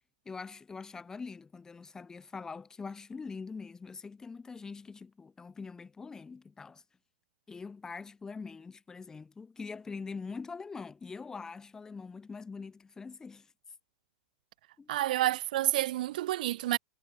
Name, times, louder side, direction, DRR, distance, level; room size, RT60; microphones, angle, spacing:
voice 1, 0.2-6.8 7.5-13.5 14.8-14.9, left 4 dB, 10° left, 4.8 m, -43 dB
voice 2, 14.9-16.8, right 15 dB, 70° right, 1.2 m, -29 dB
supercardioid pair, 140°, 5 cm